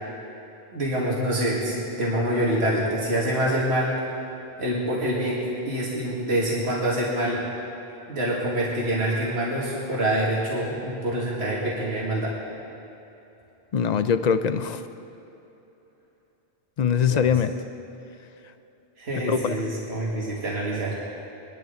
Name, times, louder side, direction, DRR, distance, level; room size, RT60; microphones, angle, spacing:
voice 1, 0.7-3.9 4.6-5.4 5.7-7.4 8.1-12.3 17.1-17.3 19.0-21.1, right 1 dB, 70° right, -6 dB, 2.3 m, -26 dB
voice 2, 13.7-14.8 16.8-17.5 19.3-19.5, left 7 dB, 50° left, 11 dB, 0.6 m, -22 dB
21.5 x 12.0 x 3.9 m, 3.0 s
omnidirectional pair, 1.1 m